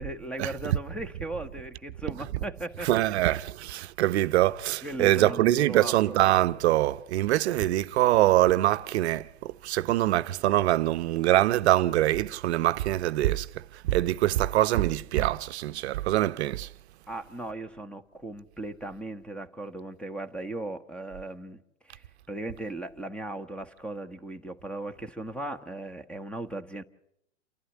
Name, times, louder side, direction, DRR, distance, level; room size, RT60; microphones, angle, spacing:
voice 1, 0.0-2.9 4.8-6.2 17.1-26.8, right 1 dB, 5° left, 1.0 m, -37 dB
voice 2, 2.8-13.5 13.9-16.7, right 15 dB, 60° right, 0.7 m, -24 dB
28.5 x 11.0 x 9.9 m
hypercardioid pair, 130°, 38 cm